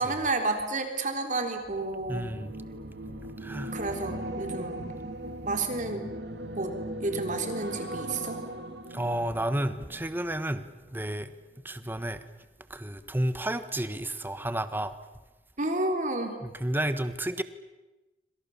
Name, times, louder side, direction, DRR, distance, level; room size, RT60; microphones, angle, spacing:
voice 1, 0.0-2.3 3.7-4.8 5.4-6.0 6.6-8.4 15.6-16.4, right 2 dB, 45° right, 5 dB, 3.6 m, -31 dB
sound 1, 1.6-11.0 11.3-11.6, right 1 dB, 70° right, 2.4 m, -39 dB
voice 2, 2.1-2.5 3.4-3.8 8.9-11.3 11.6-12.2 12.7-15.0 16.4-17.4, right 1 dB, 10° right, 11 dB, 1.4 m, -31 dB
27.5 x 26.0 x 7.2 m, 1.1 s
head